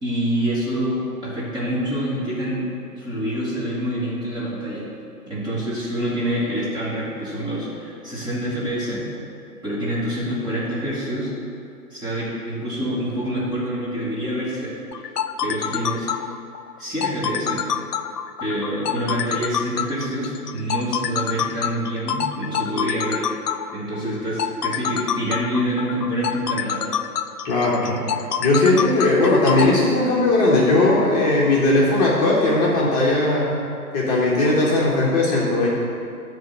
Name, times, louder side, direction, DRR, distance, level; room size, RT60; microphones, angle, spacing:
voice 1, 0.0-2.7 3.0-4.8 5.3-9.0 9.6-11.3 11.9-14.8 15.4-16.1 16.8-17.7 18.4-23.3 23.7-26.8, equal, 10° right, -9 dB, 1.5 m, -26 dB
sound 1, 14.9-29.7, left 8 dB, 80° left, 0.6 m, -26 dB
voice 2, 27.4-28.0 28.4-33.6 33.9-35.7, left 2 dB, 25° left, -5 dB, 1.3 m, -18 dB
9.9 x 3.7 x 7.2 m, 2.4 s
figure-of-eight pair, 130°, 46 cm